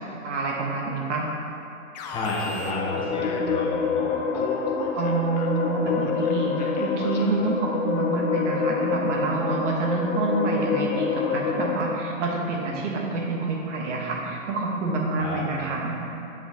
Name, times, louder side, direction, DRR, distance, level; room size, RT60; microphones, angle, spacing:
voice 1, 0.2-1.3 4.9-16.0, right 3 dB, 65° right, -1 dB, 1.3 m, -27 dB
Alarm, 1.9-4.0 4.3-7.6, left 4 dB, 35° left, 0.4 m, -38 dB
voice 2, 2.1-4.4 15.2-15.4, left 1 dB, 10° left, -5 dB, 0.8 m, -31 dB
sound 1, 2.4-11.8, left 5 dB, 75° left, 0.7 m, -27 dB
7.1 x 5.8 x 2.8 m, 2.8 s
hypercardioid pair, 140°, 39 cm